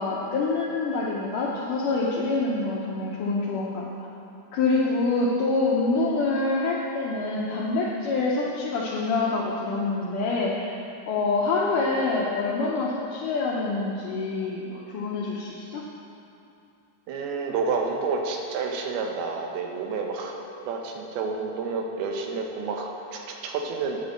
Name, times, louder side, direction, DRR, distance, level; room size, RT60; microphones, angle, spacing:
voice 1, 0.0-4.1 4.5-10.8 11.1-15.8, left 3 dB, 75° left, -5 dB, 2.1 m, -26 dB
voice 2, 17.1-24.0, right 4 dB, 85° right, 2 dB, 2.8 m, -30 dB
9.6 x 5.3 x 7.5 m, 2.7 s
omnidirectional pair, 4.4 m